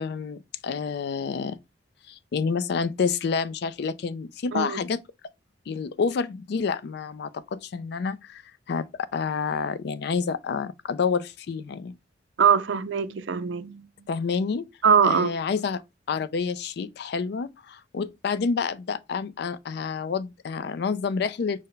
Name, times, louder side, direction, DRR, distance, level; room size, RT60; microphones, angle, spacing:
voice 1, 0.0-1.6 2.1-5.0 5.7-8.4 8.7-12.0 14.1-14.7 15.0-15.8 16.1-21.7, left 5 dB, 65° left, 0.4 m, -28 dB
voice 2, 12.4-13.9 14.8-15.3, right 7 dB, 80° right, 0.4 m, -22 dB
5.4 x 2.1 x 3.7 m
head